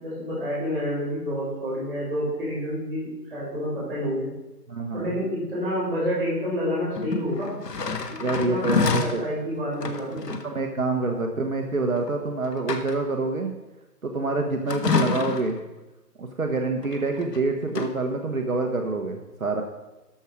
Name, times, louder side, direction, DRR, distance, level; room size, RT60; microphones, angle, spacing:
voice 1, 0.0-4.3 4.9-7.5 8.1-10.2, equal, 5° right, -20 dB, 4.0 m, -29 dB
voice 2, 4.7-5.1 8.2-9.3 10.3-13.5 14.0-15.6 16.2-19.6, right 3 dB, 55° right, 3 dB, 1.2 m, -27 dB
sound 1, 6.9-9.2 9.7-10.5 12.0-12.1 12.5-13.2 14.7-15.6 16.8-17.4 17.7-17.9, left 4 dB, 75° left, 1.4 m, -28 dB
13.0 x 6.2 x 4.9 m, 1.0 s
hypercardioid pair, 180°, 49 cm